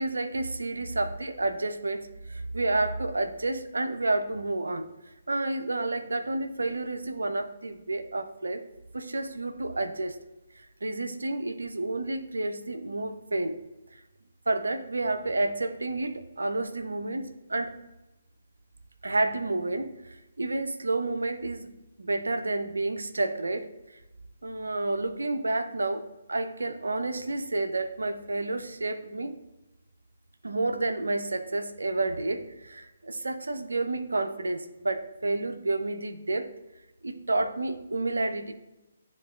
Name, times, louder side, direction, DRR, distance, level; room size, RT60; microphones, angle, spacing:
voice 1, 0.0-4.9 5.3-8.6 8.9-10.2 10.8-13.6 14.5-17.8 19.0-23.7 24.4-29.4 30.4-36.5 37.0-38.5, right 2 dB, 70° right, 8 dB, 0.5 m, -30 dB
11.0 x 3.7 x 2.4 m, 1.0 s
figure-of-eight pair, 135°, 0 cm